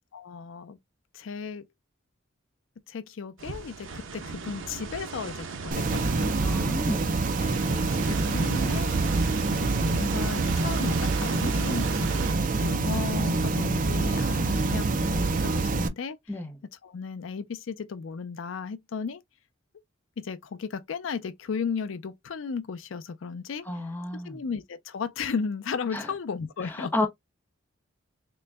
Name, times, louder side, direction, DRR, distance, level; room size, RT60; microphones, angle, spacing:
voice 1, 0.1-0.8 1.1-1.7 2.9-6.4 7.4-8.9 9.5-12.2 12.6-16.2 16.8-19.2 20.2-23.6 24.1-27.1, left 5 dB, 75° left, 0.4 m, -35 dB
sound 1, 3.4-12.3, right 4 dB, 75° right, 0.7 m, -37 dB
Ambient Tone, 5.7-15.9, right 3 dB, 40° right, 0.5 m, -26 dB
voice 2, 6.4-7.2 16.3-16.5 23.7-24.4 25.9-26.0 26.8-27.1, left 2 dB, 10° left, 0.7 m, -31 dB
3.8 x 2.1 x 3.2 m
head